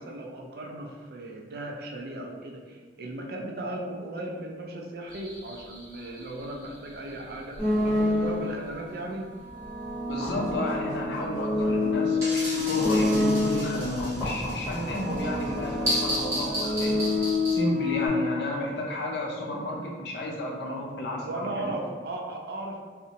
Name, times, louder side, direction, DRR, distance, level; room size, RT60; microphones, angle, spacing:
voice 1, 0.0-9.3 20.6-20.8 21.2-22.8, right 1 dB, 55° right, 1 dB, 0.4 m, -37 dB
sound 1, 5.1-8.8 9.5-17.6, equal, 15° right, 1.1 m, -35 dB
sound 2, 7.6-8.7 9.4-13.9 14.7-18.1, left 2 dB, 5° left, 1.2 m, -27 dB
voice 2, 10.1-21.6, left 1 dB, 75° left, -1 dB, 0.5 m, -32 dB
2.6 x 2.1 x 2.8 m, 1.5 s
head